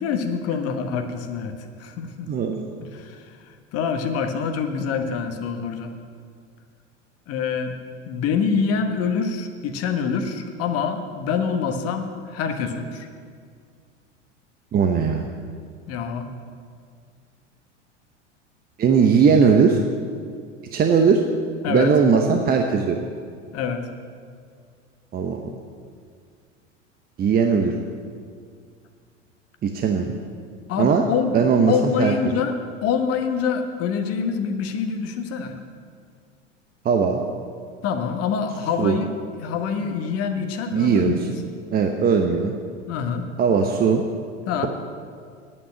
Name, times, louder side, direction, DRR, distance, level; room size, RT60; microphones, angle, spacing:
voice 1, 0.0-2.3 2.8-3.2 3.7-5.9 7.3-7.7 8.1-13.1 15.9-16.3 21.6-21.9 23.5-23.8 30.7-31.4 31.7-32.6 32.8-35.5 37.8-39.1 39.4-41.2 42.9-43.2 44.5-44.7, left 6 dB, 40° left, 6 dB, 1.3 m, -25 dB
voice 2, 2.3-2.7 14.7-15.3 18.8-19.8 20.7-21.2 21.7-23.0 25.1-25.4 27.2-27.7 29.6-30.1 30.8-31.0 31.3-32.1 36.8-37.2 38.8-39.0 40.7-41.2 41.7-42.5 43.4-44.0, right 6 dB, 25° right, 4 dB, 0.9 m, -19 dB
9.7 x 8.7 x 8.8 m, 2.1 s
figure-of-eight pair, 80°, 37 cm